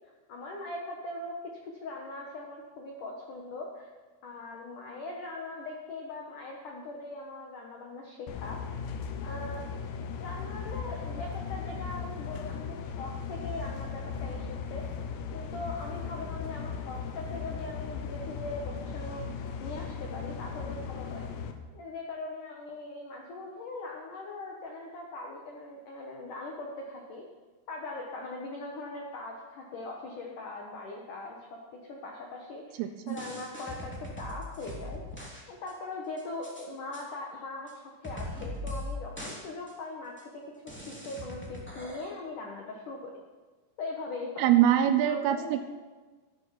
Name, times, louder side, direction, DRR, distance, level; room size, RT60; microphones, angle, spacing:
voice 1, 0.3-1.3 1.8-3.9 4.2-8.6 9.2-9.6 10.2-14.8 15.3-21.3 21.7-27.2 27.7-31.6 31.9-35.0 35.5-43.1 43.8-44.5 45.0-45.6, left 2 dB, 70° left, -1 dB, 1.9 m, -40 dB
sound 1, 8.3-21.5, left 6 dB, 90° left, 3.6 m, -37 dB
voice 2, 32.8-33.2 44.4-45.6, right 11 dB, 85° right, 8 dB, 3.2 m, -24 dB
sound 2, 33.1-35.4 35.7-35.8 36.2-36.6 36.9-37.0 37.7-37.8 38.0-38.9 39.2-39.4 39.7-39.8 40.2-40.3 40.7-42.1, left 1 dB, 5° left, 0.9 m, -40 dB
13.5 x 11.5 x 5.9 m, 1.3 s
omnidirectional pair, 5.9 m